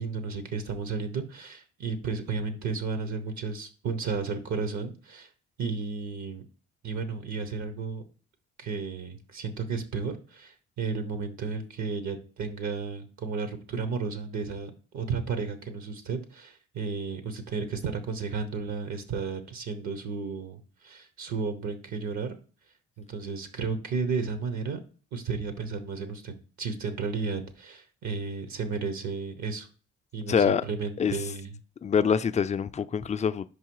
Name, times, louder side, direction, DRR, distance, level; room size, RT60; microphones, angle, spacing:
voice 1, 0.0-5.3 5.6-6.5 6.8-8.0 8.6-22.3 23.0-24.8 25.1-29.7 30.1-31.5, right 5 dB, 65° right, 1.1 m, -33 dB
voice 2, 30.3-30.6 31.0-31.1 31.8-33.5, left 7 dB, 25° left, 0.4 m, -25 dB
5.2 x 4.8 x 4.7 m
cardioid pair, 90°, 30 cm